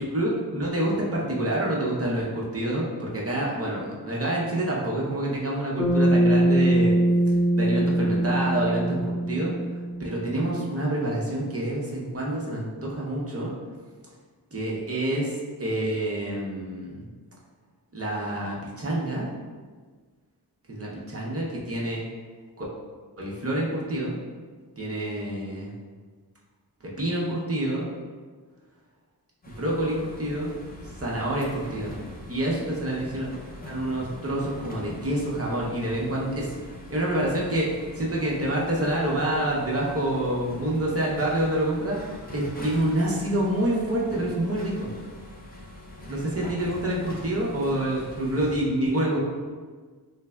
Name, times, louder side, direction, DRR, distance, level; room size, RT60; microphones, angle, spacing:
voice 1, 0.1-7.0 7.5-9.5 10.0-13.5 14.5-17.1 17.9-19.3 20.7-22.0 22.6-22.7 23.2-24.2 24.8-25.7 27.0-27.9 29.5-30.5 31.0-31.9 32.3-33.3 33.6-36.6 36.9-42.0 42.3-44.9 46.1-49.2, right 1 dB, 35° right, -4 dB, 0.7 m, -27 dB
Bass guitar, 5.8-10.2, right 1 dB, 75° left, 0.8 m, -22 dB
sound 1, 29.4-48.6, left 1 dB, 25° left, 0.4 m, -43 dB
3.2 x 3.2 x 2.2 m, 1.5 s
wide cardioid pair, 75°, 40 cm